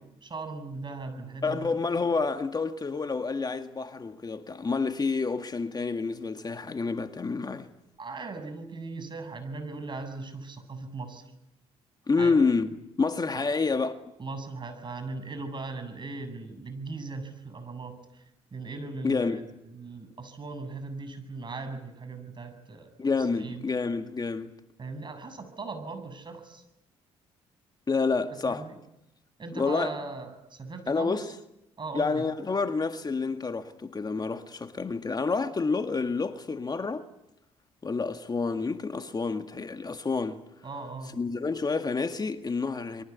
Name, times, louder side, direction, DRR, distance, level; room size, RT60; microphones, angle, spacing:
voice 1, 0.2-1.8 8.0-11.2 12.2-12.4 13.3-13.4 14.2-18.2 18.5-22.9 23.2-23.6 24.8-26.6 28.4-28.8 29.4-31.2 31.8-32.3 40.6-41.2, right 3 dB, 35° right, 7.2 m, -39 dB
voice 2, 1.4-7.7 12.1-14.0 19.0-19.4 23.0-24.5 27.9-28.7 29.6-29.9 30.9-31.3 31.9-37.1 37.8-40.4 41.1-43.0, left 4 dB, 30° left, 1.9 m, -28 dB
28.0 x 23.0 x 8.3 m
supercardioid pair, 60°, 13 cm